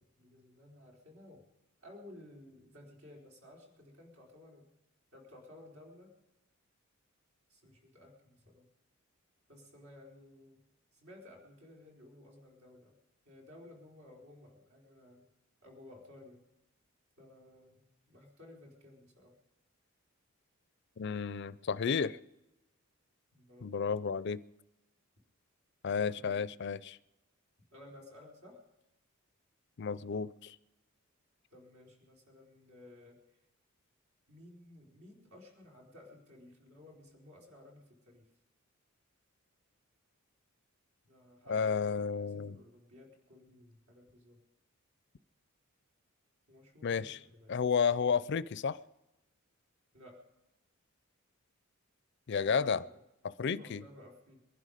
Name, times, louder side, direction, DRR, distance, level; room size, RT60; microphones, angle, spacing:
voice 1, 0.0-1.4 1.8-4.6 5.1-6.1 7.5-8.7 9.5-10.6 10.9-12.9 13.3-15.3 15.6-16.4 17.2-19.3 23.3-23.7 26.2-26.5 27.7-28.6 31.5-33.2 34.3-38.3 41.0-44.4 46.5-47.6 49.9-50.2 52.4-53.0 53.4-54.4, left 1 dB, 75° right, 4.4 m, -56 dB
voice 2, 21.0-22.2 23.6-24.4 25.8-27.0 29.8-30.6 41.5-42.6 46.8-47.2 47.5-48.8 52.3-52.8 53.2-53.8, left 6 dB, 50° left, 0.4 m, -32 dB
22.5 x 11.5 x 5.0 m
head